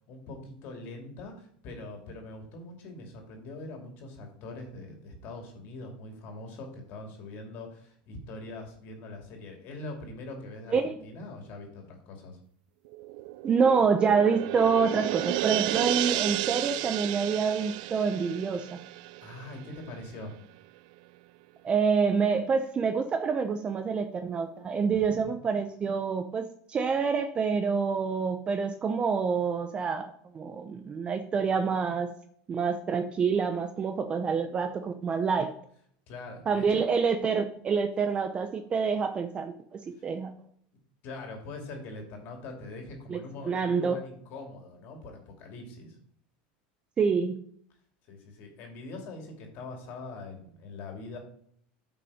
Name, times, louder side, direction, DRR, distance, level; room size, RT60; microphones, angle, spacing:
voice 1, 0.0-12.4 19.2-20.4 24.9-25.2 36.1-36.8 40.0-40.1 41.0-46.0 48.1-51.2, left 2 dB, 50° left, 3 dB, 2.7 m, -43 dB
sound 1, 12.9-19.9 20.2-20.3, right 18 dB, 70° right, 0.4 m, -32 dB
voice 2, 13.4-18.7 21.6-30.1 30.3-32.1 32.5-35.5 36.5-40.3 43.1-43.2 43.4-44.0 47.0-47.4, right 5 dB, 25° right, 8 dB, 0.7 m, -27 dB
9.5 x 5.7 x 4.9 m, 0.63 s
supercardioid pair, 140°, 4 cm